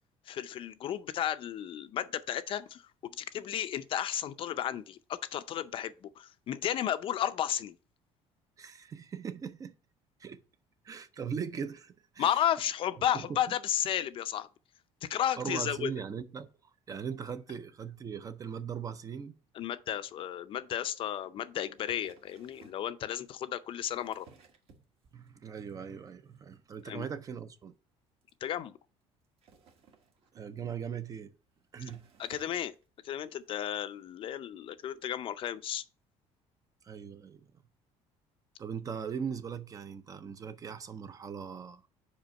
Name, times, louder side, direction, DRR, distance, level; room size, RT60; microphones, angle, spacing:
voice 1, 0.3-7.8 12.2-14.5 15.0-15.9 19.5-24.3 26.9-27.0 28.4-28.8 32.2-32.7 33.0-35.8, left 10 dB, 45° left, 0.5 m, -33 dB
voice 2, 8.6-9.8 10.2-10.4 10.8-12.4 13.1-13.4 15.4-19.4 25.1-27.7 30.3-31.3 31.7-32.0 36.8-37.5 38.6-41.9, right 7 dB, 30° right, 0.5 m, -39 dB
sound 1, 21.8-22.9 23.7-25.3 25.7-26.1 26.4-26.5 26.8-26.9 27.1-27.2 27.5-27.6 28.2-28.3 29.2-30.6 31.3-31.4 31.7-32.8 33.6-33.7, right 5 dB, 50° right, 1.4 m, -59 dB
5.2 x 4.8 x 5.3 m
cardioid pair, 145°, 12 cm